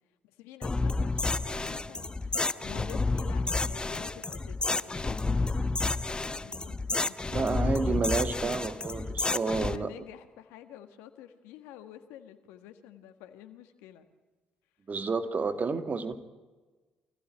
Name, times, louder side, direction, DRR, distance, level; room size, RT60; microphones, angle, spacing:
voice 1, 0.2-8.5 8.8-9.1 9.4-14.1, left 11 dB, 80° left, 8 dB, 1.6 m, -49 dB
sound 1, 0.6-9.8, left 3 dB, 25° left, 1.1 m, -30 dB
voice 2, 7.3-9.9 14.9-16.2, right 4 dB, 45° right, 9 dB, 2.2 m, -30 dB
25.0 x 15.5 x 10.0 m, 1.3 s
hypercardioid pair, 55°, 4 cm